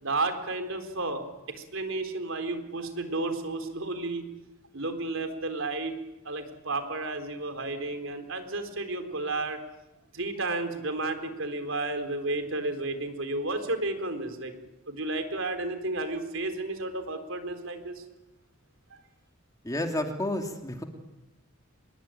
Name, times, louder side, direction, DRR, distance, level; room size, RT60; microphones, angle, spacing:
voice 1, 0.0-4.2 4.7-5.9 6.2-9.6 10.1-14.5 14.9-18.0, right 2 dB, 65° right, 8 dB, 4.0 m, -32 dB
voice 2, 19.6-20.8, left 1 dB, 15° left, 4 dB, 2.6 m, -30 dB
25.5 x 22.0 x 9.1 m, 0.98 s
head